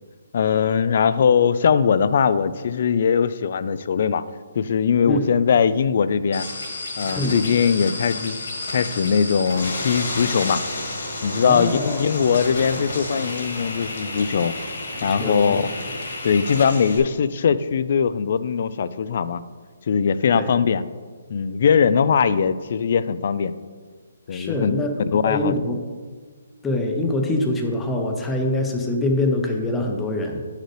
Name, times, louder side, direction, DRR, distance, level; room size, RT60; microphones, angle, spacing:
voice 1, 0.3-4.2 4.6-6.5 7.0-8.4 8.7-10.6 11.2-14.5 15.0-15.6 16.2-19.4 19.9-20.8 21.3-23.5 24.3-24.8 25.1-25.6, left 6 dB, 45° left, 15 dB, 0.3 m, -20 dB
sound 1, 6.3-17.0, left 2 dB, 65° left, 2.1 m, -31 dB
sound 2, 10.7-16.3, right 2 dB, 55° right, 1.4 m, -42 dB
voice 2, 11.4-12.0 15.0-15.6 20.3-20.5 24.3-25.8 26.6-30.4, left 1 dB, 5° left, 2 dB, 0.6 m, -24 dB
9.2 x 6.6 x 3.2 m, 1.5 s
hypercardioid pair, 170°, 0 cm